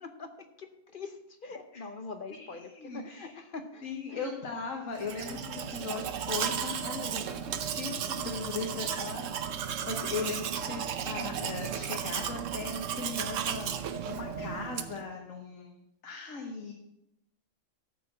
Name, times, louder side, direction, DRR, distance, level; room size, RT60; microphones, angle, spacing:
voice 1, 0.0-4.4 5.0-5.1, left 4 dB, 50° left, 8 dB, 0.8 m, -44 dB
voice 2, 2.3-3.4 3.8-13.7 14.0-16.7, left 4 dB, 80° left, 0 dB, 1.7 m, -38 dB
Domestic sounds home sounds, 5.0-15.1, right 8 dB, 75° right, 1.1 m, -34 dB
13.0 x 4.6 x 7.4 m, 0.83 s
omnidirectional pair, 1.4 m